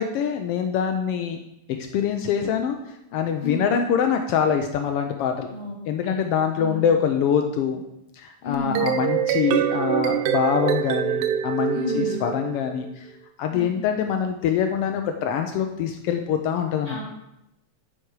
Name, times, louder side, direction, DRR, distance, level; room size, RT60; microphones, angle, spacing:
voice 1, 0.0-1.4 1.9-2.8 3.1-5.5 5.9-7.8 8.1-13.1 13.4-17.0, left 7 dB, 85° left, 5 dB, 1.3 m, -24 dB
voice 2, 8.4-8.9 11.7-12.1 13.5-13.8 16.8-17.0, left 2 dB, 45° left, -10 dB, 4.6 m, -31 dB
sound 1, 8.5-12.9, right 10 dB, 85° right, 1.9 m, -25 dB
10.0 x 5.9 x 4.8 m, 0.84 s
omnidirectional pair, 3.4 m